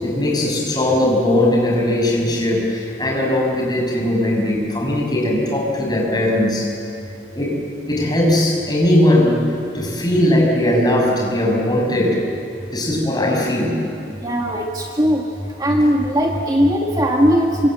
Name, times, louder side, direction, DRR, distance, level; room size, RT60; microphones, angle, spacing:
voice 1, 0.0-6.7 7.3-7.6 7.9-9.4 9.7-12.2 12.7-13.8, left 1 dB, 25° left, -1 dB, 6.3 m, -19 dB
voice 2, 14.1-15.2 15.6-17.7, equal, 20° right, 0 dB, 1.9 m, -18 dB
27.0 x 25.5 x 7.7 m, 2.8 s
head